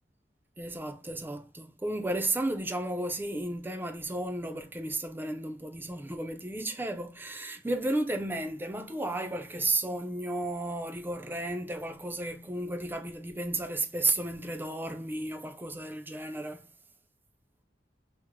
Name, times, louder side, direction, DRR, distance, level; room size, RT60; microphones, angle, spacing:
voice 1, 0.6-16.7, right 2 dB, 10° right, 0.4 m, -33 dB
3.5 x 2.0 x 3.0 m
head